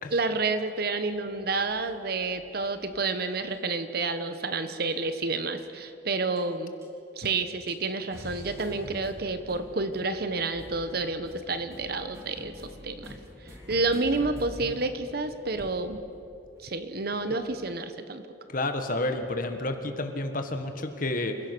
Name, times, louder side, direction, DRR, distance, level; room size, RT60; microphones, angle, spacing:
voice 1, 0.1-6.7 7.2-12.5 12.8-13.2 13.7-16.0 16.6-18.2, right 3 dB, 55° right, 10 dB, 1.2 m, -29 dB
sound 1, 1.2-3.7 4.6-5.2 6.4-6.5 6.8-6.9 7.2-7.3 7.7-17.4, equal, 15° right, 3.6 m, -46 dB
voice 2, 18.5-21.4, left 2 dB, 45° left, 6 dB, 1.7 m, -30 dB
27.5 x 16.5 x 6.2 m, 2.8 s
head